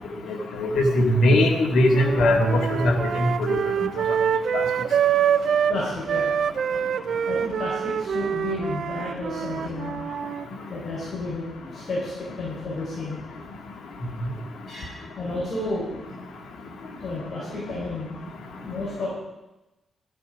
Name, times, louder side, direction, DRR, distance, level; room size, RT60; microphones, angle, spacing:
voice 1, 0.6-3.6 4.5-4.6, left 1 dB, 85° left, 2 dB, 2.0 m, -20 dB
sound 1, 1.9-5.8 6.1-10.4, right 8 dB, 70° right, 0.5 m, -25 dB
voice 2, 5.3-6.4 6.7-6.8 7.3-10.0 10.7-13.4 14.7-16.0 16.8-18.2 18.6-19.1, left 2 dB, 55° left, -6 dB, 5.0 m, -32 dB
12.5 x 11.5 x 5.2 m, 0.98 s
cardioid pair, 95°, 0 cm